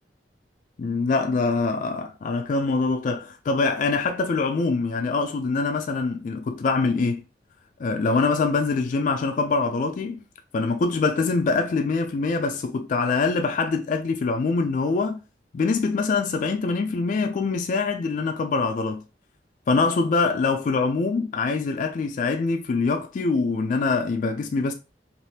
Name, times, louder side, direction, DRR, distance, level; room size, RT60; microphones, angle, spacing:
voice 1, 0.8-7.2 7.8-10.2 10.5-15.2 15.5-19.0 19.7-24.7, left 4 dB, 45° left, 0.3 m, -24 dB
2.7 x 2.4 x 3.2 m
head